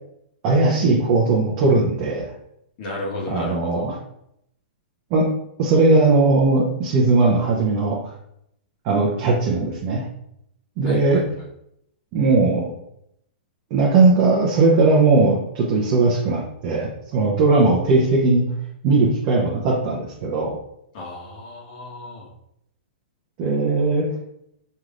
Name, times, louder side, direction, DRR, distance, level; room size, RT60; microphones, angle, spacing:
voice 1, 0.4-2.3 3.3-3.9 5.1-5.3 5.6-8.1 8.8-10.0 10.8-11.2 12.1-12.7 13.7-18.4 18.8-20.6 23.4-24.1, right 3 dB, 35° right, -4 dB, 0.8 m, -18 dB
voice 2, 2.8-3.9 10.8-11.5 20.9-22.3, left 2 dB, 45° left, -3 dB, 1.5 m, -34 dB
5.5 x 3.1 x 2.5 m, 0.76 s
hypercardioid pair, 150°, 5 cm